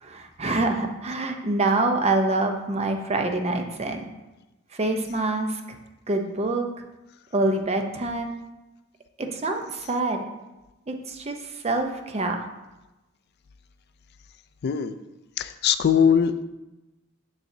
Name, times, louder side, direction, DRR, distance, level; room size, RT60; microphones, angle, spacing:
voice 1, 0.0-4.1 4.7-5.8 6.1-6.7 7.3-8.3 9.2-10.2 10.9-12.4, right 2 dB, 30° right, 4 dB, 0.7 m, -26 dB
voice 2, 14.6-14.9 15.4-16.3, left 7 dB, 50° left, 12 dB, 0.3 m, -20 dB
7.2 x 6.3 x 2.7 m, 1.0 s
head